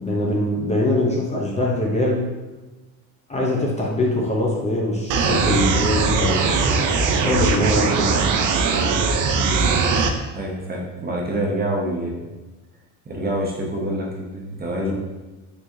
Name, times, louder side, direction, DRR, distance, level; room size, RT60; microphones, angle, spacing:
voice 1, 0.0-2.2 3.3-6.5 7.1-8.3 11.3-11.4 14.8-14.9, left 1 dB, 20° left, -3 dB, 0.6 m, -22 dB
sound 1, 5.1-10.1, right 4 dB, 55° right, 0.5 m, -20 dB
voice 2, 10.3-12.2 13.1-14.9, right 1 dB, 25° right, -2 dB, 0.7 m, -26 dB
3.5 x 3.1 x 2.6 m, 1.2 s
cardioid pair, 105°, 36 cm